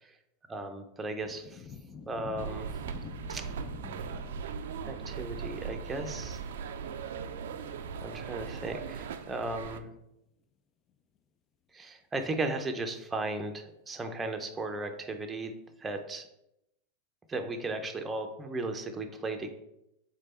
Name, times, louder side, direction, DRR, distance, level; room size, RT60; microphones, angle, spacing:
voice 1, 0.5-1.6 2.1-2.7 3.3-3.4 4.8-6.4 8.0-9.9 11.7-15.5 15.8-16.3 17.3-19.5, right 2 dB, 20° right, 5 dB, 0.6 m, -36 dB
sound 1, 1.2-9.3 9.6-9.7 10.9-11.0 11.1-11.2 13.5-13.6 15.4-15.5, left 6 dB, 35° left, 0.4 m, -49 dB
sound 2, 2.4-9.8, right 6 dB, 75° right, 0.3 m, -39 dB
3.7 x 3.3 x 4.3 m, 0.85 s
hypercardioid pair, 105°, 0 cm